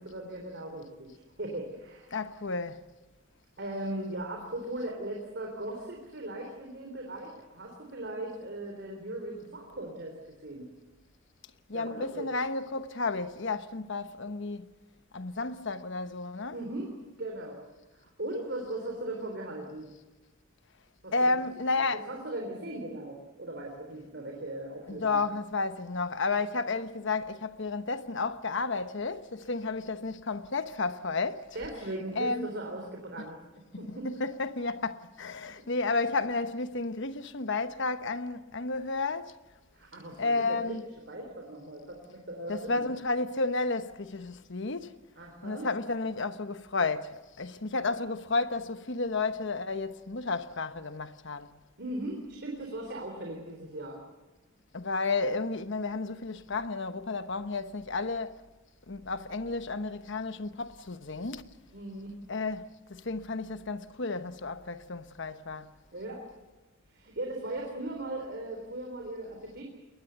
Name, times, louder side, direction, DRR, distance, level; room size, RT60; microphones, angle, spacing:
voice 1, 0.0-2.2 3.6-10.7 11.7-12.3 16.5-16.9 17.2-17.6 17.9-19.9 21.0-21.4 21.7-21.8 22.1-25.2 31.5-34.1 39.7-40.8 41.1-42.8 45.2-45.7 51.8-54.0 61.7-62.2 65.9-66.2 66.9-69.6, right 1 dB, 55° right, 3.7 m, -38 dB
voice 2, 2.1-2.8 11.7-14.7 15.1-16.6 21.1-22.0 24.9-31.5 32.1-32.5 33.7-39.3 40.2-40.8 42.5-45.0 45.4-51.5 54.7-58.4 58.9-61.5 62.3-65.7, left 3 dB, 60° left, 1.1 m, -32 dB
22.0 x 19.5 x 8.1 m
head